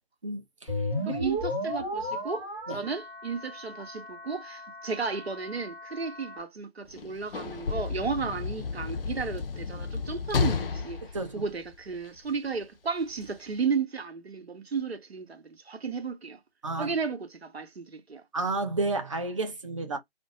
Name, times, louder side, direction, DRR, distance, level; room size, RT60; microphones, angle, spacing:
voice 1, 0.2-0.7 1.1-1.2 2.7-2.8 11.1-11.4 16.6-16.9 18.3-20.0, right 3 dB, 30° right, 0.6 m, -31 dB
sound 1, 0.7-6.4, left 1 dB, 5° left, 0.7 m, -35 dB
voice 2, 1.0-2.5 2.7-11.0 11.3-16.4 16.8-18.2, right 5 dB, 80° right, 0.9 m, -33 dB
Sliding door / Slam, 6.9-12.3 13.2-13.3, left 5 dB, 65° left, 0.5 m, -32 dB
2.6 x 2.1 x 2.7 m
figure-of-eight pair, 155°, 31 cm